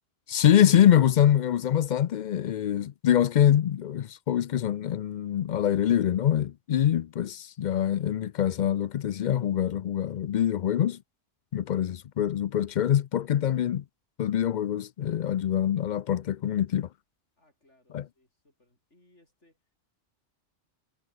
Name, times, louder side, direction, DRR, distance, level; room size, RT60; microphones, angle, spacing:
voice 1, 0.3-11.0 11.5-13.8 14.2-16.9 17.9-18.0, left 10 dB, 60° left, 0.5 m, -24 dB
voice 2, 17.4-19.7, left 1 dB, 80° left, 8.4 m, -65 dB
omnidirectional pair, 1.2 m